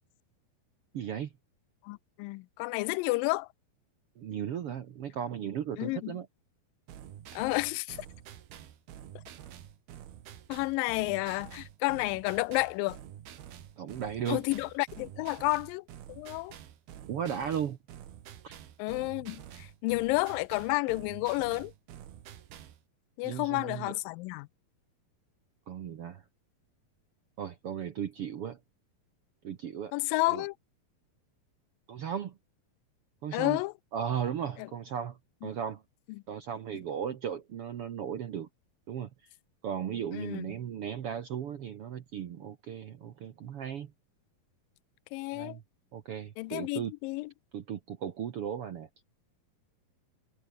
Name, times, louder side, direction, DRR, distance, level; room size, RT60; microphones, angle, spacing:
voice 1, 0.9-1.3 4.2-6.3 13.8-14.4 17.1-17.8 18.4-18.5 23.2-23.9 25.7-26.2 27.4-28.6 29.4-29.9 30.3-30.4 31.9-32.4 33.2-33.6 33.9-35.8 36.3-38.5 38.9-39.1 39.6-43.9 45.3-45.6 45.9-46.9 47.5-48.9, right 8 dB, 65° right, 1.4 m, -36 dB
voice 2, 1.8-3.5 5.8-6.2 7.3-8.0 10.5-13.0 14.3-16.5 18.8-21.7 23.2-24.5 29.9-30.6 33.3-33.7 34.6-34.7 35.4-35.5 40.1-40.5 45.1-45.6 46.4-47.3, left 23 dB, 80° left, 2.1 m, -31 dB
sound 1, 6.9-22.8, right 10 dB, 85° right, 4.0 m, -48 dB
omnidirectional pair, 4.3 m